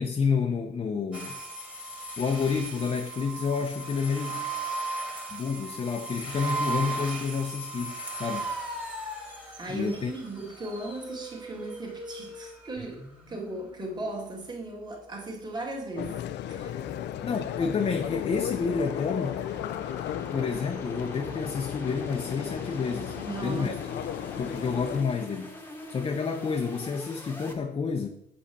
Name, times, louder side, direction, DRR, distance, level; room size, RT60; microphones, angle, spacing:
voice 1, 0.0-1.4 2.2-4.4 5.3-8.5 9.7-10.1 17.2-19.4 20.3-23.2 23.4-23.8 24.4-25.5 25.9-28.1, left 5 dB, 30° left, 0.7 m, -29 dB
sound 1, 1.1-12.8, right 2 dB, 5° right, 1.7 m, -36 dB
voice 2, 9.6-16.2 16.5-16.8 23.2-23.8, right 2 dB, 25° right, 1.8 m, -37 dB
sound 2, 12.8-27.5, left 2 dB, 10° left, 1.2 m, -44 dB
sound 3, 16.0-25.0, left 12 dB, 85° left, 0.5 m, -35 dB
7.2 x 5.2 x 6.7 m
cardioid pair, 160°, 18 cm